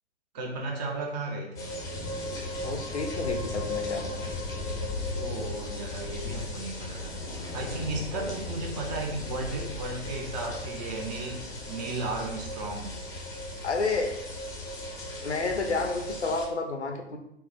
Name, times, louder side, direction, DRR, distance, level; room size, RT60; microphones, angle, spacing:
voice 1, 0.3-1.7 5.1-7.2 7.5-13.0, right 2 dB, 40° right, 1 dB, 0.6 m, -35 dB
sound 1, 1.6-16.5, left 2 dB, 10° left, 0.5 m, -36 dB
voice 2, 2.6-4.2 8.1-8.3 13.6-14.1 15.2-17.2, left 3 dB, 90° left, 4 dB, 0.7 m, -30 dB
4.3 x 2.1 x 3.4 m, 0.80 s
figure-of-eight pair, 115°, 33 cm